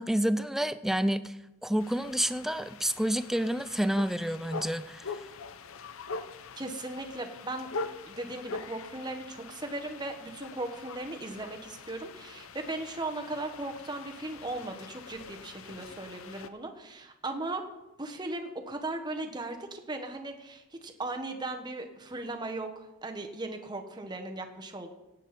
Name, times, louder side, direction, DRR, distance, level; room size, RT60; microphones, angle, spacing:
voice 1, 0.0-1.3 1.6-5.1, equal, ahead, 14 dB, 0.3 m, -29 dB
sound 1, 1.8-16.5, left 4 dB, 65° left, 0.7 m, -43 dB
voice 2, 6.6-7.7 8.0-17.6 18.0-24.9, right 2 dB, 20° right, 4 dB, 1.1 m, -37 dB
17.5 x 8.3 x 4.2 m, 0.97 s
head